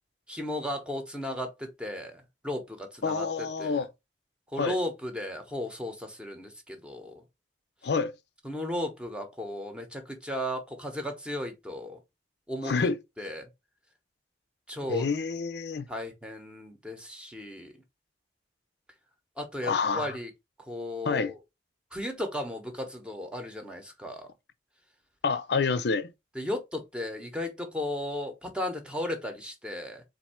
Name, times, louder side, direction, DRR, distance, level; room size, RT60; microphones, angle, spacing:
voice 1, 0.3-3.8 4.5-7.1 8.4-12.0 12.5-12.9 13.2-13.5 14.7-15.1 15.9-17.7 19.4-20.3 20.7-21.4 21.9-24.3 26.3-30.0, left 1 dB, 5° right, 0.9 m, -35 dB
voice 2, 3.0-3.9 4.6-4.8 7.8-8.1 12.6-13.0 14.9-15.9 19.6-20.2 21.0-21.3 25.2-26.1, left 4 dB, 60° left, 0.5 m, -28 dB
4.1 x 2.6 x 4.3 m
head